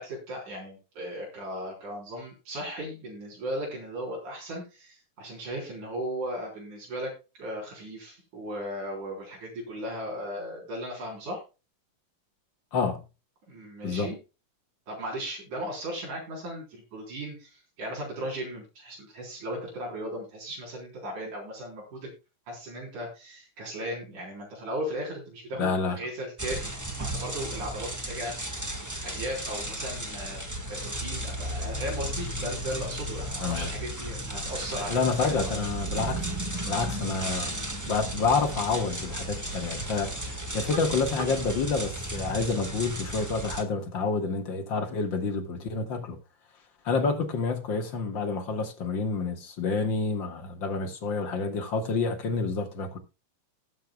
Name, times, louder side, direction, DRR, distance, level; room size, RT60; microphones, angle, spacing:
voice 1, 0.0-7.1 7.4-11.4 13.5-14.2 14.9-22.1 22.5-28.4 29.0-30.4 30.7-35.6, equal, 90° right, 5.5 m, -36 dB
voice 2, 12.7-13.0 13.8-14.1 25.6-26.0 33.4-33.7 34.9-36.3 36.7-37.6 37.9-46.2 46.8-53.0, left 4 dB, 45° left, 2.0 m, -28 dB
sound 1, 26.4-43.6, right 1 dB, 20° right, 0.5 m, -34 dB
19.0 x 7.9 x 2.3 m
omnidirectional pair, 3.4 m